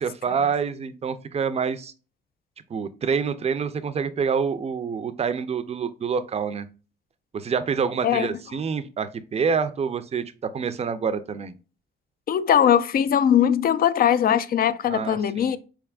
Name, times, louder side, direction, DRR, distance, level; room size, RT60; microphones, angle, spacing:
voice 1, 0.0-1.9 2.7-6.7 7.3-11.5 14.9-15.5, right 6 dB, 30° right, 0.5 m, -27 dB
voice 2, 12.3-15.6, left 9 dB, 50° left, 0.4 m, -20 dB
4.1 x 3.4 x 2.3 m
cardioid pair, 90°, 20 cm